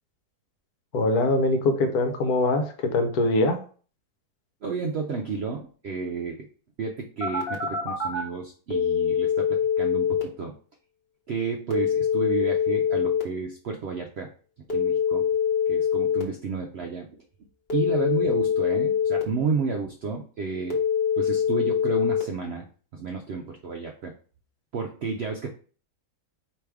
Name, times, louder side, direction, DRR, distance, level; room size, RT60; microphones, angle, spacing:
voice 1, 0.9-3.6, left 2 dB, 75° left, 6 dB, 1.3 m, -23 dB
voice 2, 4.6-6.5 6.8-10.5 11.3-14.3 14.7-15.3 15.7-17.2 17.7-20.8 21.2-22.7 22.9-24.1 24.7-25.5, right 5 dB, 80° right, 3 dB, 0.5 m, -31 dB
Telephone, 7.2-8.2 8.7-10.2 11.7-13.2 14.7-16.2 17.7-19.2 20.7-22.2, left 7 dB, 40° left, 1.2 m, -24 dB
4.8 x 3.1 x 3.4 m, 0.42 s
omnidirectional pair, 1.7 m